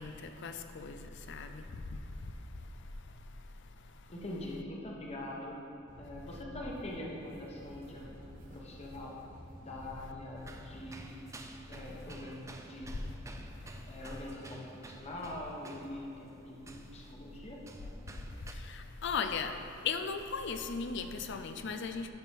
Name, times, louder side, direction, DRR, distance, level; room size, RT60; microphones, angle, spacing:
voice 1, 0.0-1.7 18.6-19.5 19.8-22.1, left 5 dB, 60° left, 8 dB, 0.5 m, -37 dB
voice 2, 4.1-5.6 6.0-9.1 9.6-11.2 11.7-12.9 13.9-17.6, left 1 dB, 30° left, -3 dB, 1.1 m, -43 dB
sound 1, 5.9-11.0, equal, 40° right, 1.6 m, -52 dB
sound 2, 10.4-18.5, right 2 dB, 15° right, 0.4 m, -51 dB
11.5 x 6.1 x 3.6 m, 2.8 s
head